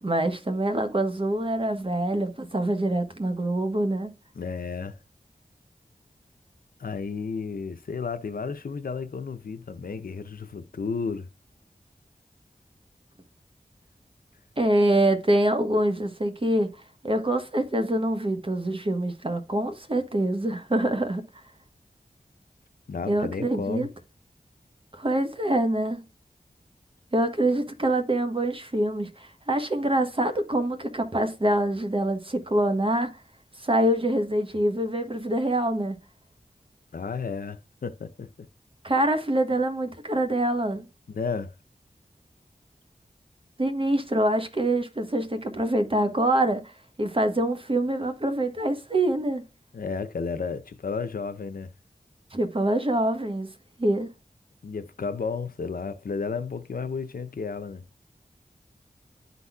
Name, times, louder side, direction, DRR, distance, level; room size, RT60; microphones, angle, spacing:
voice 1, 0.0-4.1 14.6-16.7 17.0-21.2 23.1-23.9 24.9-26.0 27.1-33.2 33.6-35.9 38.8-40.8 43.6-46.7 47.0-49.4 52.3-53.5 53.8-54.1, right 1 dB, 35° right, 1.1 m, -25 dB
voice 2, 4.3-5.0 6.8-11.3 22.9-23.9 36.9-38.5 41.1-41.5 49.7-51.7 54.6-57.8, left 5 dB, 75° left, 0.6 m, -32 dB
11.5 x 4.0 x 2.3 m
wide cardioid pair, 55°, 15 cm